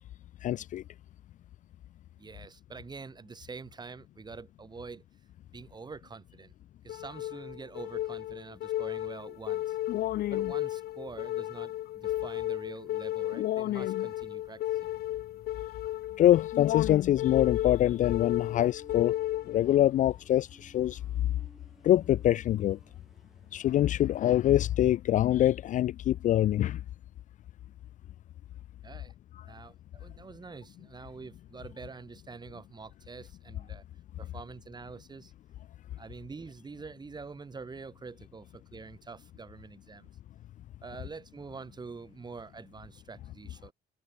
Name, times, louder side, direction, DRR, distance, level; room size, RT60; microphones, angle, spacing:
voice 1, 0.4-0.8 16.2-19.1 19.5-21.0 21.8-22.8 23.5-26.8, left 13 dB, 50° left, 0.4 m, -24 dB
voice 2, 2.2-5.0 5.5-6.5 6.8-9.8 10.3-14.9 28.8-29.1 29.4-33.8 34.2-35.3 36.0-40.1 40.8-43.7, right 4 dB, 25° right, 4.3 m, -46 dB
sound 1, 6.9-19.9, left 14 dB, 70° left, 1.2 m, -33 dB
sound 2, 17.5-24.0, equal, ahead, 4.8 m, -59 dB
cardioid pair, 110°, 17 cm